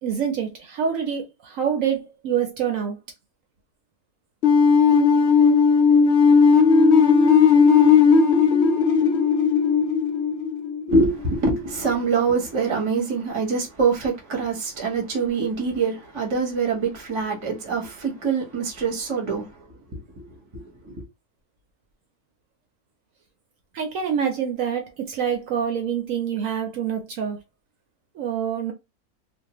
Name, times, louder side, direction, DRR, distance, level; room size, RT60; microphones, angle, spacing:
voice 1, 0.0-3.0 23.7-27.4 28.2-28.7, right 8 dB, 70° right, 0.9 m, -26 dB
sound 1, 4.4-11.3, left 5 dB, 65° left, 0.6 m, -16 dB
voice 2, 10.9-19.6 19.9-20.3 20.5-21.0, right 4 dB, 25° right, 0.7 m, -24 dB
2.6 x 2.1 x 2.9 m
omnidirectional pair, 1.6 m